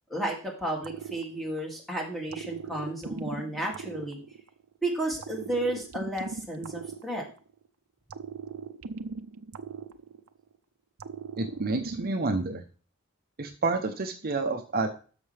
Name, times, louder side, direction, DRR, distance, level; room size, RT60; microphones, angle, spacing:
voice 1, 0.1-4.2 4.8-7.2, right 1 dB, ahead, -2 dB, 2.5 m, -32 dB
sound 1, 0.8-1.8 2.3-4.7 5.2-7.6 8.1-10.5 11.0-12.5, right 5 dB, 90° right, 0.6 m, -40 dB
voice 2, 11.4-12.6 13.4-14.9, right 3 dB, 45° right, 6 dB, 0.8 m, -29 dB
13.0 x 5.9 x 3.4 m, 0.37 s
head